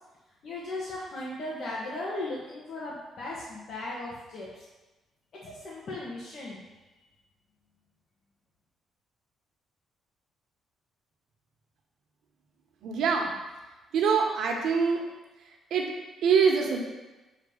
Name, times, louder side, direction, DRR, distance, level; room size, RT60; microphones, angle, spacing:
voice 1, 0.4-4.6 5.4-6.6, left 2 dB, 60° left, -6 dB, 1.2 m, -37 dB
voice 2, 12.8-13.3 13.9-15.0 15.7-15.9 16.2-16.8, right 6 dB, 75° right, 1 dB, 1.0 m, -24 dB
7.2 x 2.9 x 5.0 m, 1.1 s
cardioid pair, 90°, 0 cm